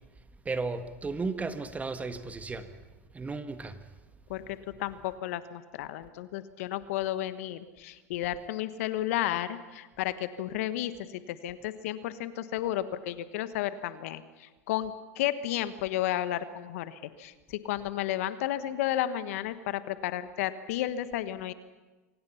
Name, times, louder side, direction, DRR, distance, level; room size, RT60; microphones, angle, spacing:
voice 1, 0.5-2.8 3.1-3.8, right 3 dB, 20° right, 9 dB, 1.8 m, -34 dB
voice 2, 4.3-10.9 11.3-21.5, left 13 dB, 65° left, 13 dB, 1.3 m, -32 dB
28.0 x 24.5 x 5.8 m, 1.2 s
hypercardioid pair, 90°, 8 cm